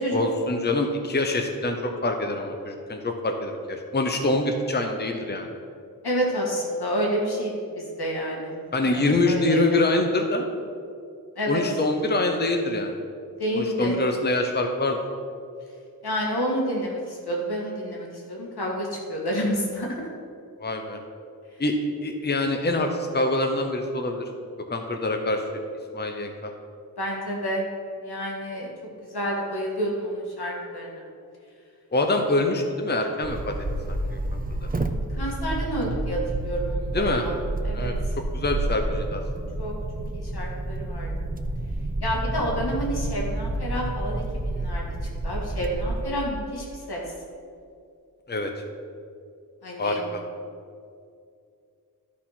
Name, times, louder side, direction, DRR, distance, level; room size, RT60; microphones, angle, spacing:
voice 1, 0.1-5.5 8.7-10.5 11.5-13.0 13.5-15.0 20.6-21.0 21.6-24.3 24.7-25.4 25.9-26.5 31.9-33.6 33.9-34.7 36.9-37.3 37.7-37.9 38.3-39.2 48.3-48.5 49.8-50.2, left 2 dB, 25° left, 4 dB, 0.8 m, -25 dB
voice 2, 6.0-8.5 8.9-9.6 11.4-11.6 13.4-14.0 16.0-20.0 27.0-27.7 28.0-28.7 29.1-31.0 35.1-36.2 36.4-37.3 37.6-37.9 39.6-39.7 40.1-41.1 42.0-44.8 45.2-47.0 49.6-50.0, equal, 85° left, -2 dB, 2.0 m, -29 dB
sound 1, 33.2-46.1, right 2 dB, 25° right, 0.5 m, -29 dB
12.0 x 4.2 x 5.9 m, 2.4 s
wide cardioid pair, 85°, 38 cm